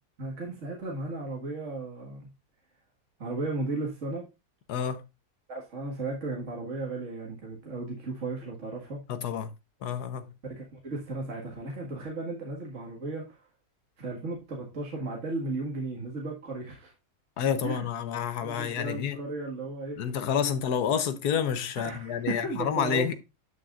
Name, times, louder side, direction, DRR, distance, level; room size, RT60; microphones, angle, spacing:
voice 1, 0.2-2.2 3.2-4.3 5.5-9.0 10.4-13.4 14.0-16.9 17.6-17.9 18.4-20.0 21.8-23.1, right 2 dB, 45° right, 2.1 m, -35 dB
voice 2, 4.7-5.0 9.1-9.5 9.8-10.3 17.4-19.2 20.0-23.1, left 8 dB, 70° left, 1.4 m, -29 dB
11.0 x 6.3 x 2.5 m
omnidirectional pair, 1.8 m